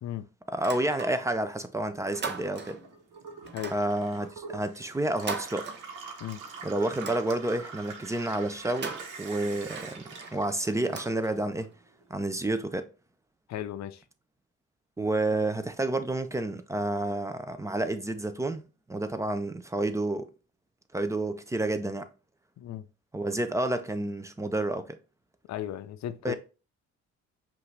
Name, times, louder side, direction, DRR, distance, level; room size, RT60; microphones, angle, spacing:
voice 1, 0.5-2.8 3.7-5.7 6.6-10.0 10.3-11.7 12.1-12.9 15.0-20.3 20.9-22.1 23.1-25.0 26.2-26.3, right 2 dB, 10° right, 0.5 m, -30 dB
sound 1, 0.5-1.5 1.8-3.0 3.5-6.3 6.7-7.8 8.6-11.7, right 4 dB, 35° right, 0.9 m, -41 dB
Gurgling / Water tap faucet / Sink (filling or washing), 1.9-11.4 11.7-12.6, right 5 dB, 90° right, 1.1 m, -45 dB
voice 2, 13.5-14.0 22.6-22.9 25.5-26.3, left 12 dB, 65° left, 0.5 m, -36 dB
5.4 x 2.6 x 3.2 m
cardioid pair, 90°, 30 cm